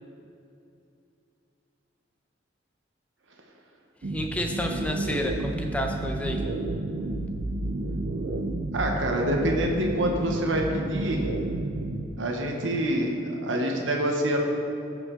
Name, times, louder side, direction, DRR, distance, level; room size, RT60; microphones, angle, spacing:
sound 1, 4.0-12.0, right 2 dB, 55° right, 0.5 m, -31 dB
voice 1, 4.1-6.4, left 1 dB, 5° left, 2 dB, 0.6 m, -30 dB
voice 2, 8.7-11.2 12.2-14.4, right 1 dB, 85° right, 1 dB, 0.9 m, -26 dB
14.5 x 5.0 x 3.7 m, 2.7 s
head